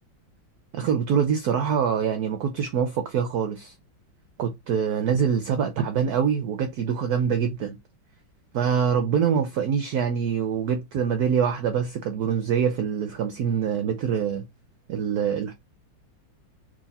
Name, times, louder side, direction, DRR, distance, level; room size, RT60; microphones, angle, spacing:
voice 1, 0.7-3.7 4.4-7.8 8.5-14.4 14.9-15.5, right 7 dB, 70° right, 0.9 m, -24 dB
3.7 x 3.1 x 4.1 m
omnidirectional pair, 2.1 m